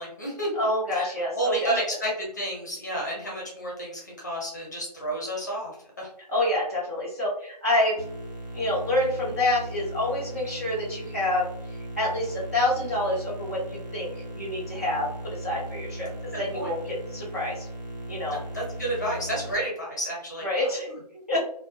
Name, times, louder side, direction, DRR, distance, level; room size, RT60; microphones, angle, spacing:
voice 1, 0.0-0.5 0.9-6.1 16.5-16.7 18.3-20.5, right 1 dB, 25° left, -3 dB, 0.7 m, -31 dB
voice 2, 0.5-1.7 6.3-8.0 8.5-11.4 12.0-16.1 16.4-17.7 18.1-18.4 20.4-21.4, left 1 dB, 25° right, -7 dB, 0.4 m, -27 dB
sound 1, 8.0-19.5, right 1 dB, 85° right, 0.9 m, -38 dB
2.4 x 2.1 x 2.6 m, 0.67 s
figure-of-eight pair, 165°, 21 cm